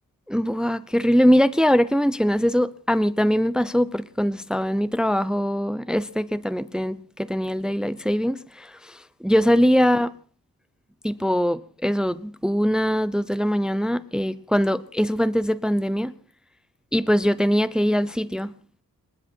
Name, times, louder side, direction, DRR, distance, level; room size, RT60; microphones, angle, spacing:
voice 1, 0.3-10.1 11.0-16.1 16.9-18.5, equal, ahead, 0.7 m, -22 dB
29.0 x 10.5 x 4.5 m
wide cardioid pair, 140°, 34 cm